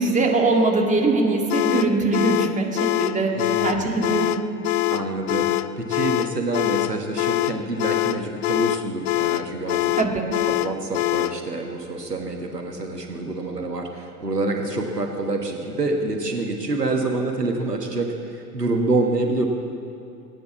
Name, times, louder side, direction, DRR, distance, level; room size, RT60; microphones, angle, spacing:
voice 1, 0.0-2.7 3.0-3.3 3.6-4.4 10.0-10.2, right 3 dB, 15° right, 0 dB, 2.4 m, -21 dB
sound 1, 1.5-11.4, left 16 dB, 50° left, 0.6 m, -24 dB
voice 2, 3.3-3.9 4.9-9.9 10.4-19.5, right 2 dB, 85° right, 3 dB, 1.5 m, -27 dB
19.5 x 9.7 x 7.3 m, 2.6 s
figure-of-eight pair, 85°, 47 cm